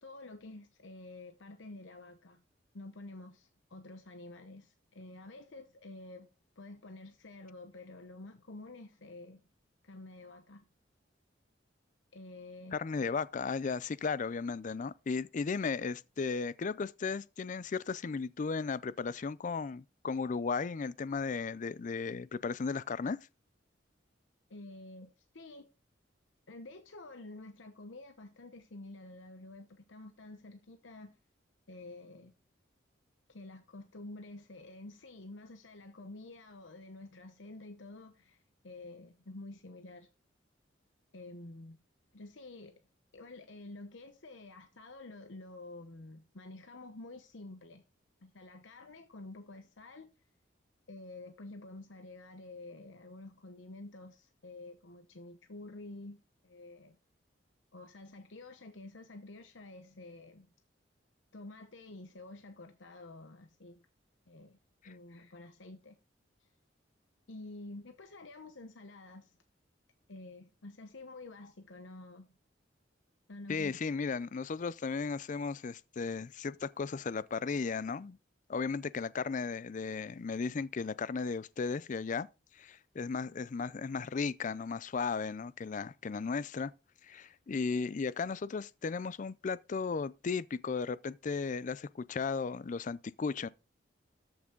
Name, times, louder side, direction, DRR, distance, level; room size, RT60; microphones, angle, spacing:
voice 1, 0.0-2.4 2.7-6.3 6.6-9.4 9.8-10.7 12.1-12.8 24.5-25.7 26.5-31.1 31.7-32.3 33.3-40.1 41.1-41.8 42.1-42.8 43.1-47.8 48.2-50.1 50.9-56.2 56.4-57.0 57.7-60.5 61.3-63.8 64.3-64.6 64.8-66.0 66.4-66.5 67.3-69.4 70.1-72.3 73.3-73.8, left 2 dB, 80° left, 0.9 m, -49 dB
voice 2, 12.7-23.2 73.5-78.2 78.5-82.3 82.6-86.7 87.0-93.5, left 5 dB, 45° left, 0.4 m, -35 dB
13.5 x 6.0 x 3.8 m
head